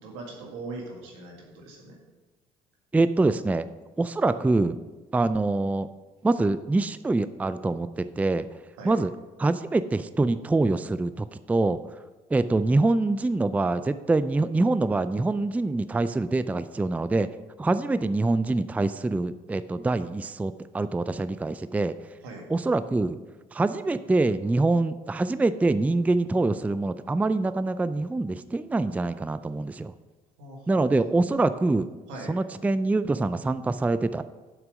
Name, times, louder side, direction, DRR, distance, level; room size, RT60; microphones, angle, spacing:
voice 1, 0.0-1.9 8.8-8.9 22.2-22.5 30.4-30.8 32.1-32.3, right 2 dB, 85° right, 0 dB, 1.9 m, -40 dB
voice 2, 2.9-3.7 4.0-4.8 5.1-5.9 6.2-8.5 8.8-9.1 9.4-11.8 12.3-17.3 17.6-21.9 22.5-23.2 23.5-29.9 30.7-31.9 32.3-34.2, right 2 dB, 10° right, 13 dB, 0.3 m, -25 dB
7.4 x 6.2 x 5.1 m, 1.2 s
supercardioid pair, 70°, 16 cm